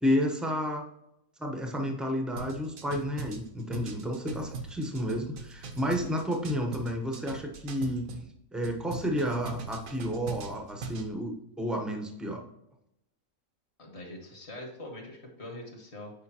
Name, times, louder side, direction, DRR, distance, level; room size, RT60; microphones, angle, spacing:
voice 1, 0.0-0.8 1.4-8.1 8.5-12.4, equal, ahead, 2 dB, 0.6 m, -31 dB
sound 1, 2.4-8.3 8.6-11.1, right 4 dB, 70° right, 1.2 m, -40 dB
voice 2, 13.8-16.1, left 1 dB, 45° left, 1 dB, 1.7 m, -43 dB
8.5 x 5.0 x 2.8 m, 0.82 s
omnidirectional pair, 1.6 m